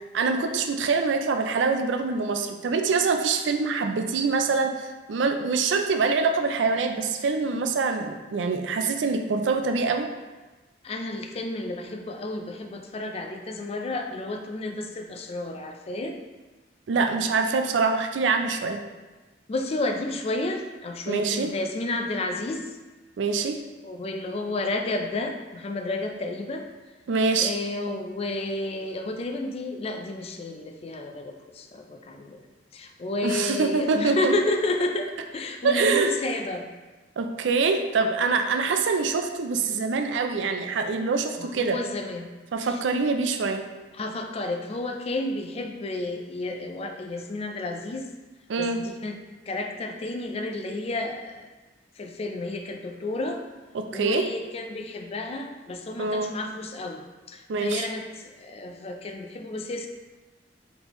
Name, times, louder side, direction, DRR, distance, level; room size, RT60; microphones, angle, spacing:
voice 1, 0.1-10.1 16.9-18.8 21.1-21.5 23.2-23.6 27.1-27.6 33.2-34.3 35.6-36.1 37.2-41.8 42.5-43.6 48.5-48.8 53.7-54.2 56.0-56.3 57.5-57.9, right 4 dB, 90° right, 6 dB, 0.4 m, -25 dB
voice 2, 10.8-16.2 19.5-22.7 23.8-26.7 27.3-32.4 32.7-36.6 41.4-42.3 42.6-42.8 43.9-48.1 48.6-49.2 49.5-51.5 52.0-53.4 53.9-59.9, left 2 dB, 35° left, 4 dB, 0.4 m, -31 dB
3.9 x 3.7 x 2.9 m, 1.2 s
head